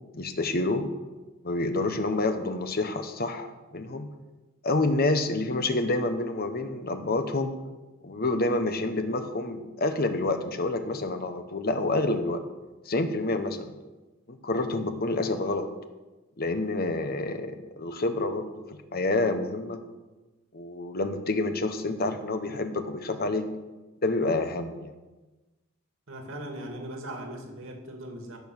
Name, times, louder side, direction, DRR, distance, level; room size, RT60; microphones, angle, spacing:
voice 1, 0.1-0.9 1.4-4.1 4.6-7.5 8.0-12.4 12.9-13.7 14.3-15.7 16.4-18.5 18.9-19.8 20.5-23.5 24.0-24.9, left 2 dB, 50° left, 8 dB, 1.2 m, -28 dB
voice 2, 26.1-28.4, right 1 dB, 65° right, 2 dB, 2.5 m, -39 dB
16.5 x 7.1 x 6.5 m, 1.2 s
head